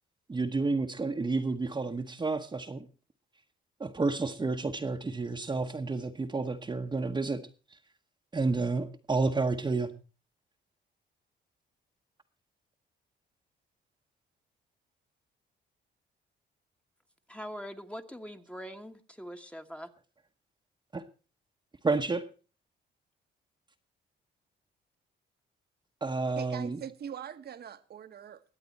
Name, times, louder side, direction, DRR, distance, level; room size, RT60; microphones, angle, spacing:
voice 1, 0.3-2.9 3.8-7.4 7.7-7.8 8.3-9.9 20.9-21.0 21.8-22.2 26.0-26.8, right 3 dB, 20° right, 1.0 m, -30 dB
voice 2, 17.3-19.9, equal, 5° left, 1.3 m, -43 dB
voice 3, 26.4-28.4, right 8 dB, 55° right, 1.1 m, -42 dB
22.0 x 8.4 x 4.2 m
cardioid pair, 90°, 20 cm